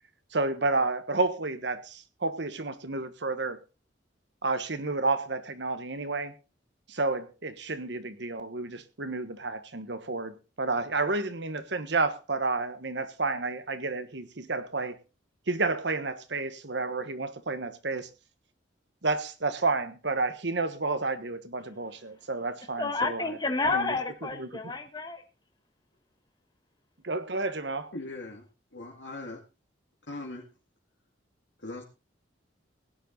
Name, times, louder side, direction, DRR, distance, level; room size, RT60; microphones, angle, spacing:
voice 1, 0.3-3.6 4.4-6.3 6.9-15.0 15.5-18.1 19.0-23.3 23.7-23.9 24.4-24.7 27.0-27.9, right 3 dB, 65° right, 1.4 m, -30 dB
voice 2, 22.8-25.2, left 3 dB, 20° left, 1.5 m, -30 dB
voice 3, 27.9-29.4 30.1-30.4 31.6-31.8, left 2 dB, 70° left, 2.3 m, -40 dB
17.0 x 10.0 x 4.0 m
head